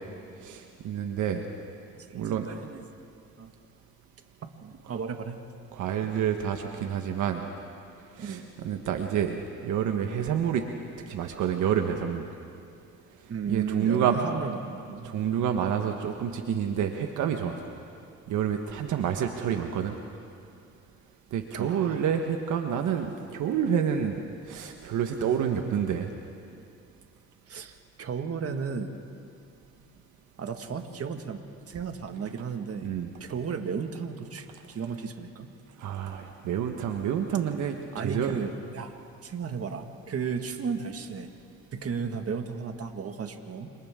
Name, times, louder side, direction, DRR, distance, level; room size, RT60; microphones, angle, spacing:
voice 1, 0.4-1.4 2.1-2.5 5.7-7.4 8.2-9.4 9.6-10.6 11.1-12.3 13.5-14.2 15.0-17.5 18.3-19.9 21.3-24.2 24.5-26.1 32.8-33.1 35.8-38.4, right 8 dB, 80° right, 4 dB, 1.3 m, -28 dB
voice 2, 1.9-2.9 3.4-3.5 4.6-5.4 8.2-8.4 13.3-15.1 21.5-22.0 27.5-29.0 30.4-32.9 33.2-35.5 37.9-39.0 39.2-41.3 41.7-43.8, right 6 dB, 50° right, 5 dB, 1.8 m, -34 dB
29.0 x 27.5 x 3.8 m, 2.5 s
cardioid pair, 90°, 30 cm